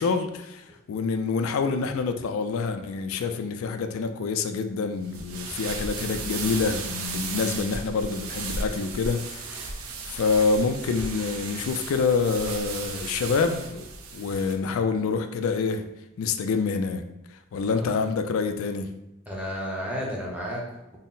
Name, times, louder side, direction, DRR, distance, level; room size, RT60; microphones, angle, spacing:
voice 1, 0.0-9.5 10.1-13.9 14.1-15.9 16.2-17.0 17.5-18.9, left 4 dB, 80° left, 8 dB, 0.3 m, -26 dB
sound 1, 5.0-14.5, right 4 dB, 90° right, 0.5 m, -35 dB
voice 2, 17.5-17.9 19.3-21.0, equal, 5° right, -3 dB, 0.6 m, -33 dB
3.9 x 2.0 x 3.9 m, 0.91 s
head